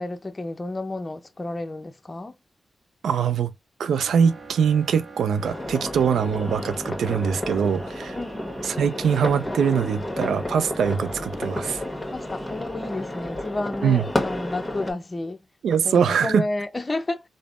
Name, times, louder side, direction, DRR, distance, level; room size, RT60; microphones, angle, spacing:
voice 1, 0.0-2.4 8.1-8.6 12.1-15.4 15.7-17.3, left 2 dB, 35° left, 0.6 m, -31 dB
voice 2, 3.0-3.5 3.8-8.2 8.6-11.8 13.8-14.1 15.6-16.4, right 7 dB, 85° right, 0.3 m, -23 dB
sound 1, 4.0-12.6, right 3 dB, 45° right, 0.7 m, -44 dB
sound 2, 5.4-14.9, left 1 dB, 15° left, 1.1 m, -31 dB
3.3 x 2.0 x 2.4 m
cardioid pair, 55°, 0 cm